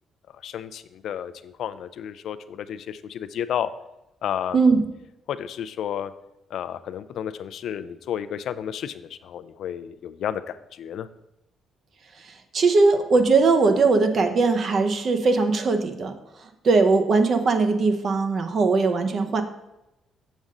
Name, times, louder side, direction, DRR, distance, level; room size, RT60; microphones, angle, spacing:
voice 1, 0.3-3.7 4.2-4.6 5.3-6.1 6.5-11.1, left 9 dB, 75° left, 13 dB, 0.3 m, -32 dB
voice 2, 12.5-16.1 16.6-19.4, right 3 dB, 50° right, 7 dB, 0.7 m, -20 dB
7.2 x 5.2 x 3.7 m, 0.91 s
cardioid pair, 95°, 0 cm